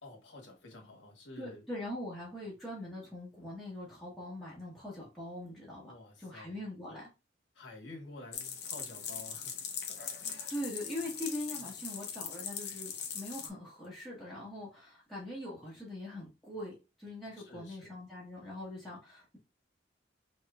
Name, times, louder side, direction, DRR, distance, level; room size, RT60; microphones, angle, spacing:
voice 1, 0.0-1.7 5.8-6.6 7.5-9.5 9.9-10.6 11.6-11.7 17.4-18.0, left 2 dB, 85° left, 1.4 m, -51 dB
voice 2, 1.4-5.9 6.2-7.1 10.5-19.4, left 1 dB, ahead, 1.3 m, -42 dB
sound 1, 8.3-13.5, left 7 dB, 65° left, 0.8 m, -40 dB
5.3 x 3.0 x 2.4 m
head